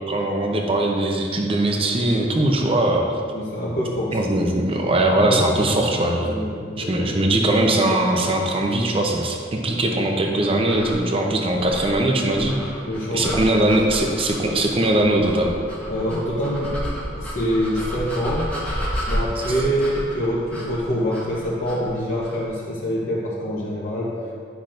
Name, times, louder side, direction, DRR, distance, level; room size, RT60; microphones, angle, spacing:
voice 1, 0.1-3.1 4.1-6.3 6.8-12.6 13.1-15.5, right 1 dB, 30° right, 2 dB, 0.7 m, -20 dB
voice 2, 3.3-4.2 5.1-5.8 6.1-7.4 12.9-13.7 15.9-16.9 17.1-18.5 19.1-24.2, equal, 45° left, -7 dB, 0.9 m, -26 dB
sound 1, 10.6-22.5, equal, 5° left, 1.1 m, -32 dB
10.5 x 5.8 x 2.6 m, 2.2 s
head